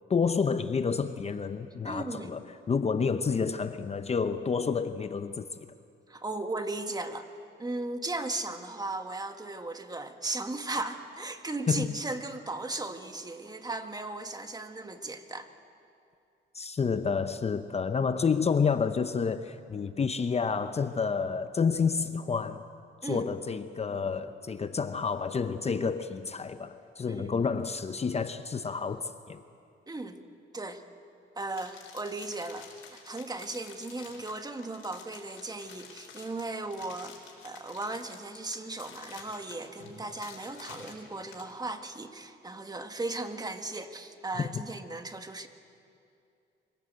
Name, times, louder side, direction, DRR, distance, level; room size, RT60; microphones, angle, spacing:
voice 1, 0.1-2.4 2.7-5.5 11.7-12.0 16.5-22.6 23.0-29.4 44.4-44.5, left 5 dB, 30° left, 10 dB, 0.8 m, -29 dB
voice 2, 1.8-2.4 6.1-7.3 7.6-15.5 23.0-23.3 27.1-27.4 29.9-30.2 30.5-30.8 31.3-37.2 37.4-45.5, right 2 dB, 20° right, 7 dB, 1.7 m, -36 dB
sound 1, 31.5-41.5, left 7 dB, 85° left, 4.4 m, -50 dB
25.0 x 17.5 x 8.0 m, 2.5 s
cardioid pair, 90°, 20 cm